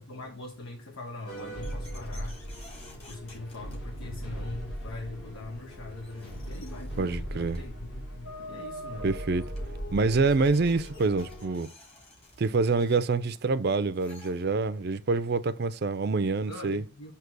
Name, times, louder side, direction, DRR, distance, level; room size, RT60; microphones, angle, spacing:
voice 1, 0.0-2.8 3.1-9.2 16.4-17.1, left 2 dB, 85° left, 1.1 m, -42 dB
sound 1, 1.3-11.6, equal, 55° left, 2.8 m, -39 dB
sound 2, 1.3-4.3 5.6-5.7 6.0-7.8 9.0-9.1 9.3-14.8, left 2 dB, 30° left, 1.8 m, -55 dB
voice 2, 7.0-7.6 9.0-9.5 9.9-11.7 12.4-16.8, right 4 dB, 50° right, 0.4 m, -26 dB
7.9 x 2.9 x 5.9 m
head